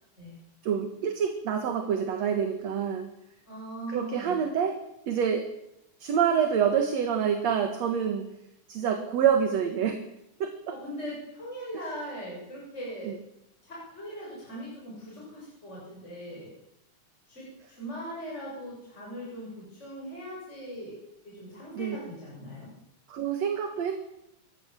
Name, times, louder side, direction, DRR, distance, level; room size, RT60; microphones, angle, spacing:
voice 1, 0.6-3.1 3.9-4.8 5.1-5.5 6.0-8.3 8.7-10.1 10.4-10.7 13.0-13.1 21.7-22.0 23.1-24.0, right 7 dB, 60° right, 6 dB, 2.6 m, -27 dB
voice 2, 3.5-4.4 10.7-13.2 13.6-16.5 17.3-21.0 21.2-22.7, equal, 20° left, -4 dB, 7.3 m, -40 dB
26.5 x 14.5 x 7.6 m, 0.85 s
omnidirectional pair, 3.6 m